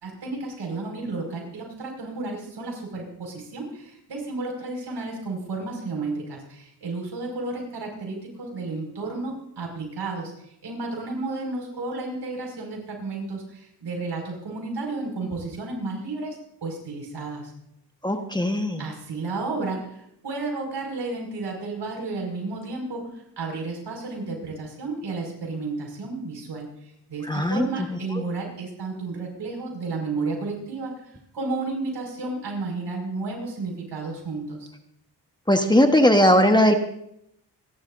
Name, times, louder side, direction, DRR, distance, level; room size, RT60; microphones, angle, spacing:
voice 1, 0.0-10.3 10.6-17.5 18.8-31.0 31.3-34.7, right 3 dB, 80° right, 1 dB, 5.5 m, -32 dB
voice 2, 18.0-18.8 27.3-27.7 35.5-36.7, equal, 10° left, 5 dB, 1.3 m, -18 dB
26.5 x 11.5 x 2.6 m, 0.75 s
cardioid pair, 80°, 41 cm